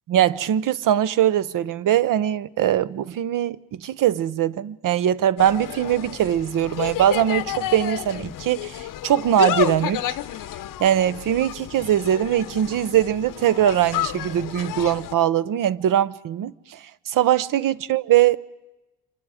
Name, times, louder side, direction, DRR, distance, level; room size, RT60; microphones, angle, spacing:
voice 1, 0.1-10.0 10.8-16.8 17.1-18.4, right 11 dB, 55° right, 0.7 m, -21 dB
Insect, 5.4-15.1, left 13 dB, 55° left, 0.8 m, -31 dB
26.5 x 24.5 x 4.9 m
cardioid pair, 160°, 40 cm